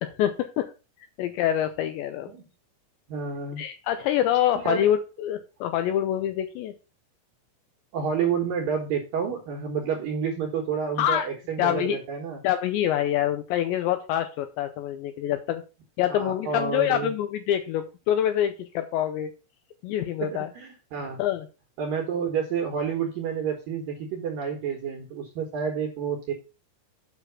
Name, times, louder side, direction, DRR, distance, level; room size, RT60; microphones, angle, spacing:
voice 1, 0.0-0.7 1.2-2.3 3.6-6.7 11.0-11.3 11.6-12.0 12.4-15.6 16.0-19.3 19.8-20.5 21.2-21.5, left 11 dB, 85° left, 9 dB, 2.6 m, -26 dB
voice 2, 3.1-3.6 4.6-4.9 7.9-12.4 16.1-17.1 20.2-21.2 21.8-26.3, right 6 dB, 70° right, 2 dB, 2.2 m, -29 dB
8.2 x 5.8 x 5.8 m, 0.32 s
omnidirectional pair, 5.8 m